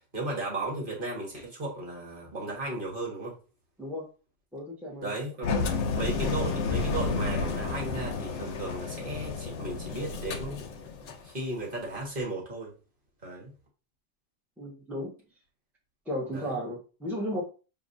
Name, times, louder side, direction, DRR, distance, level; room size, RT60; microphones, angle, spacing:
voice 1, 0.1-3.4 5.0-10.7 11.2-12.7 13.2-13.5 16.3-16.6, right 2 dB, 40° right, -2 dB, 1.5 m, -35 dB
voice 2, 4.5-5.1 14.6-15.1 16.1-17.4, equal, ahead, -3 dB, 1.0 m, -34 dB
Engine, 5.4-11.3, left 4 dB, 65° left, 0.9 m, -31 dB
6.8 x 2.7 x 2.6 m, 0.35 s
omnidirectional pair, 1.4 m